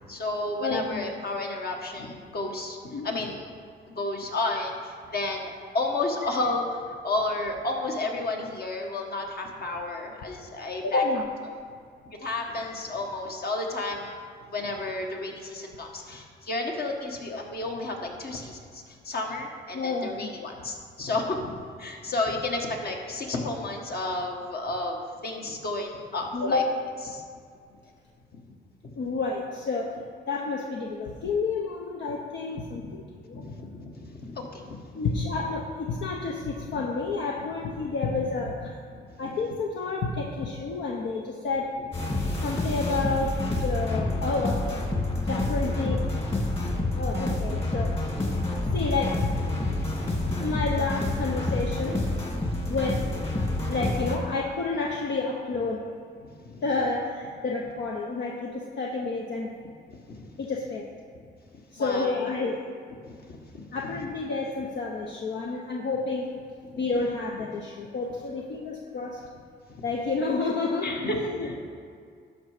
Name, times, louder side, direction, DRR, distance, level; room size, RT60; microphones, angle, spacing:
voice 1, 0.1-3.5 3.9-11.0 12.2-14.2 14.5-25.0 25.2-26.6 27.1-27.2 28.3-28.4 28.8-29.0 32.7-33.0 33.3-35.1 36.7-36.8 37.8-37.9 38.9-39.3 42.2-42.4 46.6-46.7 50.2-50.4 52.7-52.8 56.4-56.7 59.9-60.3 61.8-62.3 63.0-64.0 66.7-66.8 70.8-71.6, left 2 dB, 55° left, 1 dB, 1.6 m, -32 dB
voice 2, 0.6-1.0 2.9-3.1 10.8-11.3 19.7-20.3 26.3-26.6 29.0-30.0 30.3-33.4 34.9-38.8 39.2-41.7 42.4-44.8 45.3-46.0 46.9-48.0 48.7-49.3 50.4-52.0 52.7-53.0 53.7-55.8 56.6-59.5 60.4-60.9 61.7-62.6 63.7-66.3 66.8-69.2 69.8-71.6, left 3 dB, 70° left, -1 dB, 1.0 m, -30 dB
sound 1, 41.9-54.2, left 2 dB, 30° left, 2.3 m, -28 dB
12.0 x 5.5 x 5.0 m, 2.2 s
cardioid pair, 75°, 19 cm